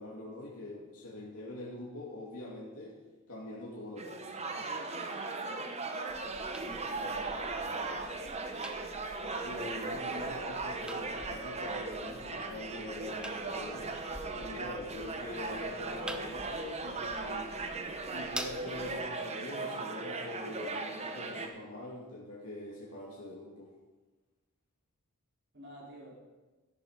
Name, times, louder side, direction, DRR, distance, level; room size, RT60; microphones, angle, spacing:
voice 1, 0.0-2.9 3.3-4.6 9.4-13.9 14.4-17.5 18.1-23.7, left 1 dB, 70° left, -5 dB, 2.7 m, -44 dB
sound 1, 4.0-21.5, right 3 dB, 30° right, 1.0 m, -38 dB
sound 2, 6.1-19.1, right 1 dB, 5° right, 0.7 m, -48 dB
voice 2, 6.6-8.2 25.5-26.2, right 1 dB, 50° right, -4 dB, 3.5 m, -50 dB
13.5 x 10.5 x 5.1 m, 1.2 s
head